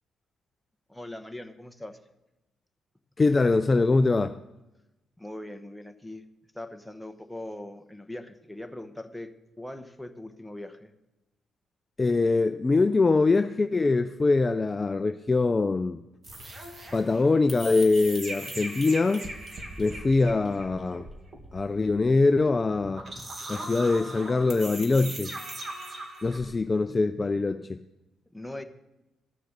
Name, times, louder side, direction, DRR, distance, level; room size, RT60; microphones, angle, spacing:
voice 1, 0.9-2.0 5.2-6.2 6.5-10.9 28.3-28.6, left 1 dB, 5° left, 6 dB, 1.0 m, -41 dB
voice 2, 3.2-4.4 12.0-16.0 16.9-19.3 19.8-21.1 21.5-23.0 23.5-25.3 26.2-27.8, left 3 dB, 25° left, 10 dB, 0.4 m, -23 dB
sound 1, 16.2-26.5, right 1 dB, 35° right, 2.0 m, -40 dB
14.0 x 6.6 x 6.7 m, 0.97 s
cardioid pair, 90°, 0 cm